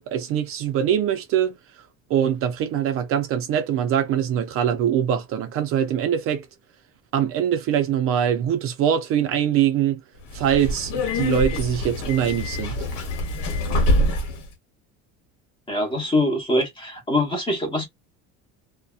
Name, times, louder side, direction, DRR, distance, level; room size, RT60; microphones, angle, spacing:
voice 1, 0.1-1.6 2.1-6.5 7.1-10.0 10.3-12.7, right 9 dB, 45° right, 0.4 m, -23 dB
Subway metro underground, 10.2-14.5, left 1 dB, 75° left, 1.1 m, -25 dB
voice 2, 15.7-17.9, left 1 dB, 15° left, 0.9 m, -23 dB
2.7 x 2.1 x 2.3 m
cardioid pair, 165°, 31 cm